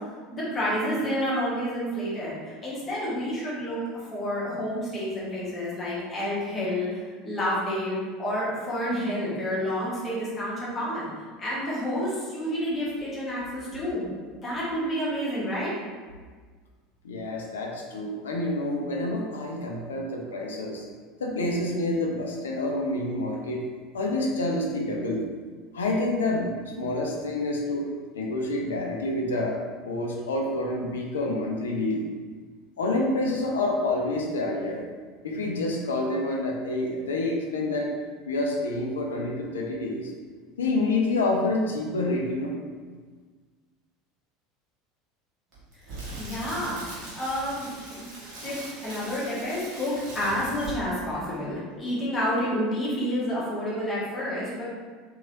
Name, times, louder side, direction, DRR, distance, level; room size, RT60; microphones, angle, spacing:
voice 1, 0.3-2.4 2.6-3.8 4.1-6.9 7.2-11.1 11.4-14.1 14.4-15.7 46.2-46.8 47.1-48.0 48.4-48.6 48.8-54.6, equal, 25° left, -7 dB, 1.1 m, -29 dB
voice 2, 17.0-20.8 21.2-23.6 23.9-25.2 25.7-27.8 28.1-29.6 29.9-32.0 32.8-34.8 35.2-37.9 38.3-40.1 40.6-42.5, left 2 dB, 70° left, 0 dB, 0.5 m, -28 dB
Crackle, 45.5-51.0 51.3-51.5, right 1 dB, 40° right, 1.3 m, -40 dB
3.0 x 2.7 x 2.6 m, 1.5 s
figure-of-eight pair, 75°, 0 cm